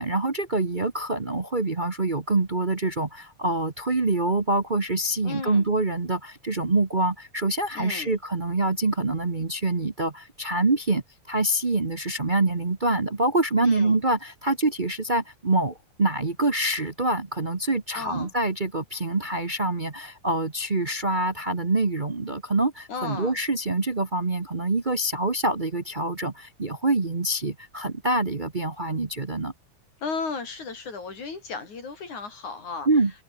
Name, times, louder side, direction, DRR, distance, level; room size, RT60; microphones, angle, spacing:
voice 1, 0.0-29.5 32.9-33.1, right 2 dB, 50° right, 0.5 m, -25 dB
voice 2, 5.2-5.7 7.7-8.1 13.6-14.0 17.9-18.3 22.9-23.4 30.0-32.9, left 4 dB, 80° left, 6.9 m, -34 dB
open air
omnidirectional pair, 3.4 m